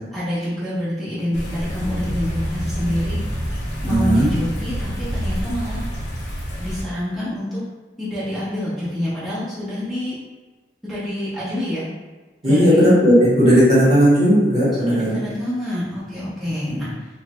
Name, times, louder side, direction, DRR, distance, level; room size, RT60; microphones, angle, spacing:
voice 1, 0.1-3.2 3.8-5.8 6.6-7.6 8.0-10.1 10.8-11.9 12.4-12.8 14.8-17.1, left 1 dB, ahead, -12 dB, 0.9 m, -27 dB
sound 1, 1.3-6.8, equal, 85° left, 0.7 m, -27 dB
voice 2, 3.9-4.3 12.4-15.2 16.7-16.8, equal, 40° right, -8 dB, 1.2 m, -15 dB
3.4 x 2.1 x 3.0 m, 1.3 s
head